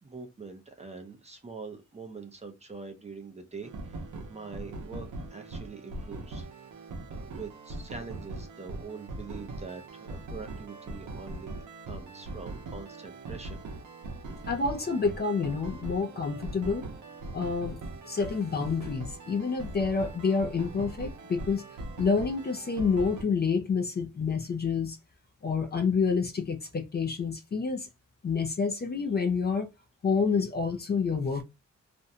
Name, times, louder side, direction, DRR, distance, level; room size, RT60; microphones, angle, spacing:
voice 1, 0.0-6.5 7.1-13.6, right 4 dB, 20° right, 0.5 m, -44 dB
sound 1, 3.6-23.2, right 2 dB, 90° right, 0.7 m, -41 dB
voice 2, 14.5-16.9 17.3-17.8 18.0-21.6 22.0-25.0 25.4-27.9 28.2-29.7 30.0-31.4, left 5 dB, 35° left, 0.4 m, -28 dB
2.5 x 2.1 x 2.7 m
wide cardioid pair, 140°, 29 cm